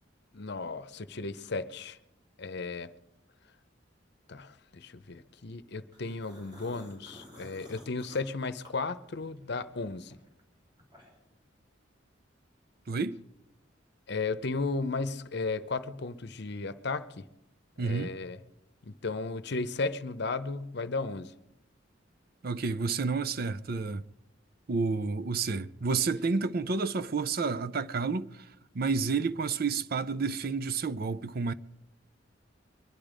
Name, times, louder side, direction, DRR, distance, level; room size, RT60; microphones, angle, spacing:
voice 1, 0.3-2.0 2.4-2.9 4.3-10.2 14.1-17.2 17.8-18.4 18.8-21.3, left 3 dB, 60° left, 0.8 m, -35 dB
sound 1, 5.9-9.5 9.8-11.3, left 1 dB, 25° right, 3.6 m, -52 dB
voice 2, 12.9-13.2 17.8-18.1 22.4-24.0 24.7-28.4 28.7-31.5, right 4 dB, 50° right, 0.5 m, -30 dB
23.0 x 11.0 x 5.1 m
head